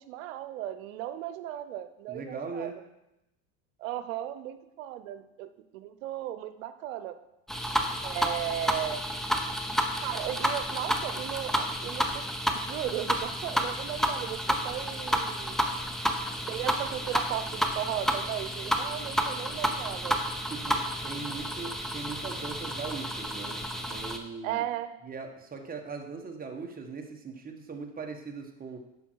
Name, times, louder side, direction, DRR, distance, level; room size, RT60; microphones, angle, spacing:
voice 1, 0.0-2.7 3.8-7.2 8.0-9.0 10.0-12.2 12.5-15.6 16.5-20.2 24.4-25.0, right 12 dB, 85° right, 11 dB, 0.8 m, -36 dB
voice 2, 2.1-2.8 20.5-24.6 25.0-28.8, right 4 dB, 20° right, 2 dB, 1.4 m, -40 dB
sound 1, 7.5-24.2, equal, ahead, 0.8 m, -31 dB
8.9 x 6.1 x 4.7 m, 0.89 s
supercardioid pair, 105°, 39 cm